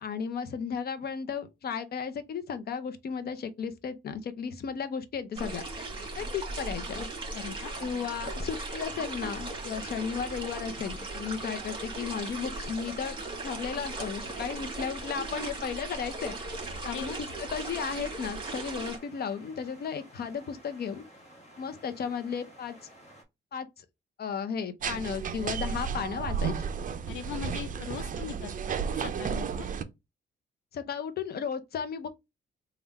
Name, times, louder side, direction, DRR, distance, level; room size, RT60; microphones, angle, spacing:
voice 1, 0.0-5.6 6.1-7.1 7.8-16.4 16.8-17.1 17.4-21.0 21.6-22.8 23.5-23.8 24.2-26.7 30.7-32.1, left 6 dB, 50° left, 0.7 m, -34 dB
sound 1, 5.3-19.0, right 2 dB, 25° right, 1.5 m, -38 dB
voice 2, 7.3-7.7 16.8-17.2 27.1-29.7, left 9 dB, 85° left, 0.5 m, -40 dB
sound 2, 7.6-23.2, equal, 35° left, 1.3 m, -54 dB
sound 3, 24.8-29.8, right 6 dB, 40° right, 0.5 m, -33 dB
3.5 x 2.4 x 4.1 m
cardioid pair, 90°, 20 cm